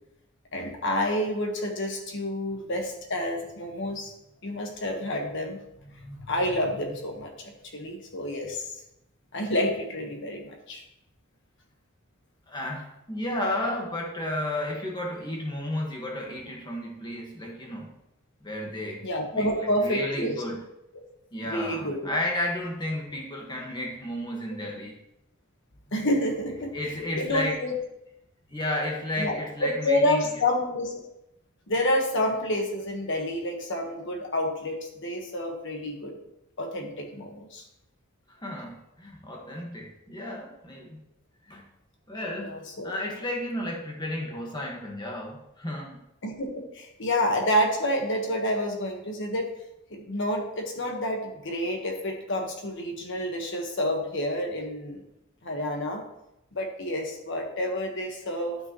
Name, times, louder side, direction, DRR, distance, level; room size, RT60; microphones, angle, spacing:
voice 1, 0.5-4.1 4.4-5.6 6.0-8.8 9.3-10.8 19.0-20.3 21.4-22.2 25.9-26.7 27.2-27.7 29.2-30.9 31.7-36.1 36.6-37.6 42.4-42.9 46.2-49.5 49.9-55.0 55.4-56.0 56.5-58.6, left 1 dB, 60° left, 2 dB, 1.5 m, -29 dB
voice 2, 12.5-17.9 18.4-19.0 19.3-20.6 21.3-25.0 26.7-27.6 28.5-30.3 38.3-41.0 41.4-41.7 42.1-46.0, left 1 dB, 20° left, -1 dB, 1.6 m, -33 dB
12.5 x 5.4 x 3.1 m, 0.86 s
head